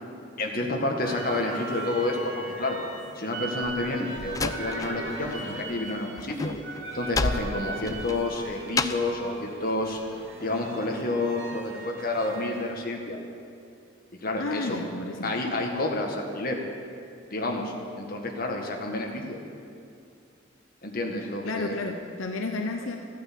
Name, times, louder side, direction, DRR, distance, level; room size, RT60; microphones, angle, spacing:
voice 1, 0.4-2.8 3.1-6.5 6.9-10.0 10.4-13.2 14.2-14.8 15.2-16.6 17.3-19.4 20.8-21.8, left 2 dB, 45° left, 1 dB, 1.8 m, -29 dB
sound 1, 1.0-12.7, right 2 dB, 75° right, 2.1 m, -39 dB
Slam, 3.6-5.4 5.7-9.2, left 3 dB, 15° left, 0.4 m, -31 dB
voice 2, 14.4-15.4 21.4-23.0, left 3 dB, 85° left, 3 dB, 0.9 m, -32 dB
14.5 x 9.5 x 7.6 m, 2.5 s
head